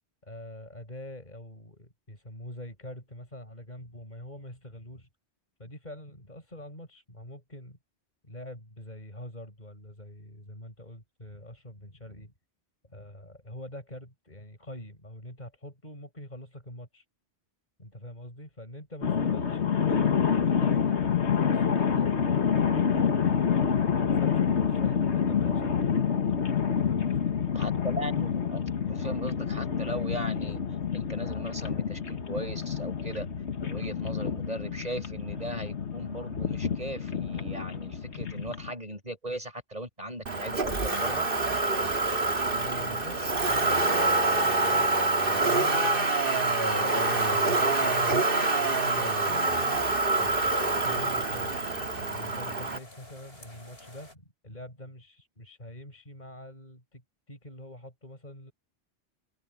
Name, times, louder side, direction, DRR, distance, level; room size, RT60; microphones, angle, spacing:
voice 1, 0.2-5.1 5.6-7.8 8.2-12.3 12.8-17.1 17.8-23.3 23.7-25.7 26.6-27.4 42.5-48.1 48.6-51.6 52.0-57.0 57.3-58.5, left 1 dB, 40° left, 7.2 m, -45 dB
sound 1, 19.0-38.7, left 7 dB, 85° left, 1.7 m, -28 dB
voice 2, 27.5-30.6 30.9-33.3 33.6-41.3, right 1 dB, 35° right, 7.9 m, -38 dB
Motor vehicle (road), 40.3-52.8, right 2 dB, 55° right, 2.1 m, -26 dB
sound 2, 43.0-54.1, left 1 dB, 65° left, 7.5 m, -50 dB
omnidirectional pair, 1.1 m